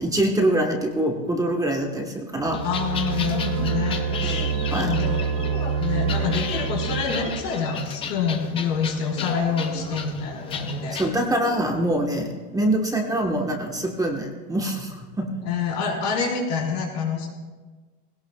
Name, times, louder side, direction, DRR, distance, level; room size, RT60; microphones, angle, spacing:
voice 1, 0.0-2.6 4.2-5.1 10.9-15.3, right 1 dB, 10° right, 1 dB, 1.2 m, -25 dB
sound 1, 2.4-7.5, right 6 dB, 35° right, 0.6 m, -27 dB
sound 2, 2.5-11.1, left 6 dB, 15° left, 0.3 m, -34 dB
voice 2, 2.6-4.4 4.7-5.2 5.8-11.0 15.4-17.3, left 5 dB, 90° left, -2 dB, 4.4 m, -27 dB
20.0 x 17.5 x 2.3 m, 1.4 s
supercardioid pair, 145°, 46 cm